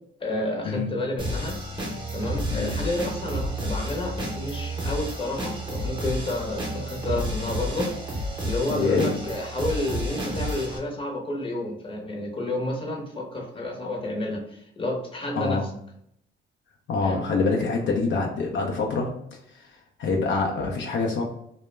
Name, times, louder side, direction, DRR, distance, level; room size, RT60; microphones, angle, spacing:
voice 1, 0.2-1.5 2.1-15.6 17.0-17.3, left 1 dB, 25° left, 0 dB, 0.7 m, -30 dB
sound 1, 1.2-10.8, equal, 25° right, 0.7 m, -31 dB
voice 2, 8.7-9.1 15.4-15.6 16.9-19.1 19.6-19.7 20.0-21.2, left 4 dB, 65° left, 0 dB, 0.5 m, -25 dB
2.2 x 2.0 x 3.1 m, 0.70 s
cardioid pair, 90°, 20 cm